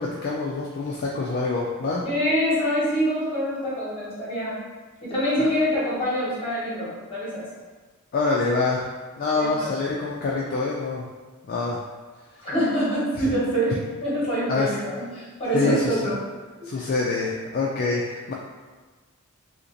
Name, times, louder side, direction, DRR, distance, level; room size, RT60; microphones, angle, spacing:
voice 1, 0.0-2.0 8.1-8.9 9.2-11.1 11.5-11.8 14.5-14.7 15.5-16.0 16.6-18.3, left 3 dB, 45° left, -3 dB, 0.3 m, -25 dB
voice 2, 2.0-4.6 5.0-7.5 9.4-9.7 12.4-13.7 14.0-16.2, equal, 25° left, -9 dB, 1.2 m, -25 dB
2.9 x 2.8 x 2.5 m, 1.4 s
head